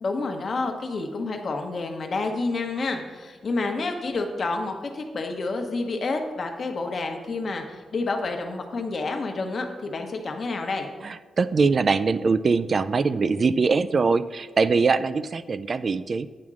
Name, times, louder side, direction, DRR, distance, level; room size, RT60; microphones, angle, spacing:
voice 1, 0.0-10.9, left 3 dB, 50° left, 4 dB, 0.9 m, -29 dB
voice 2, 11.0-16.3, right 4 dB, 45° right, 14 dB, 0.3 m, -22 dB
8.6 x 3.6 x 6.2 m, 1.4 s
cardioid pair, 95°, 0 cm